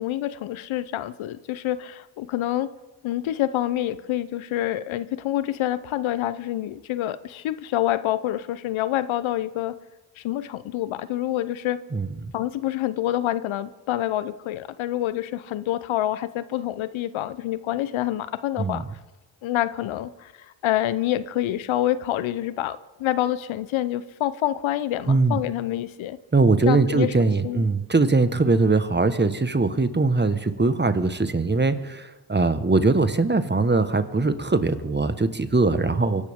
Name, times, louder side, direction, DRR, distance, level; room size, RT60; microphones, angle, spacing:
voice 1, 0.0-2.7 3.0-9.8 10.2-11.8 12.3-18.8 19.4-20.3 20.6-26.2 26.7-27.6, left 13 dB, 75° left, 15 dB, 0.8 m, -27 dB
voice 2, 25.1-25.4 26.3-36.3, right 3 dB, 20° right, 11 dB, 1.4 m, -21 dB
24.0 x 12.0 x 3.7 m, 1.2 s
supercardioid pair, 45°, 48 cm